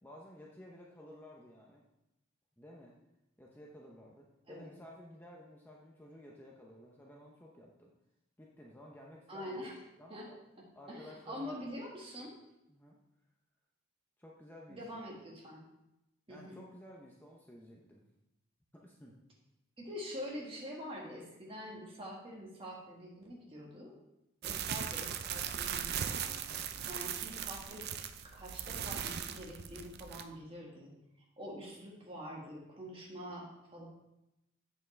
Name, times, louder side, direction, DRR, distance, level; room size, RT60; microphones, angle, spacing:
voice 1, 0.0-1.8 2.6-3.0 3.4-7.9 8.4-9.6 10.0-10.4 10.8-11.6 12.7-13.0 14.2-15.0 16.3-18.1 18.7-19.2 26.8-27.0, left 1 dB, 10° left, -2 dB, 0.7 m, -54 dB
voice 2, 9.3-9.8 10.1-10.3 10.9-12.3 14.7-15.6 16.3-16.6 19.8-23.9 24.4-26.4 26.9-27.8 28.2-30.9 31.4-33.9, equal, 25° right, -3 dB, 1.7 m, -45 dB
sound 1, 24.4-30.2, right 8 dB, 50° right, 0.4 m, -39 dB
8.0 x 7.1 x 3.3 m, 0.91 s
head